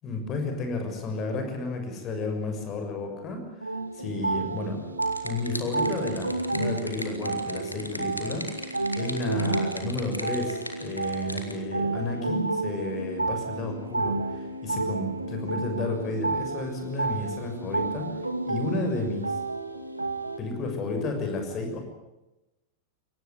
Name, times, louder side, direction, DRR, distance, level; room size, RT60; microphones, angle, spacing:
voice 1, 0.0-3.4 3.9-4.8 5.2-18.1 18.5-19.3 20.4-21.8, left 2 dB, 30° left, 5 dB, 6.7 m, -32 dB
sound 1, 3.6-20.4, right 3 dB, 85° right, 2.0 m, -31 dB
sound 2, 4.7-11.6, equal, 90° left, 2.7 m, -39 dB
23.5 x 18.5 x 9.5 m, 0.99 s
figure-of-eight pair, 90°, 0 cm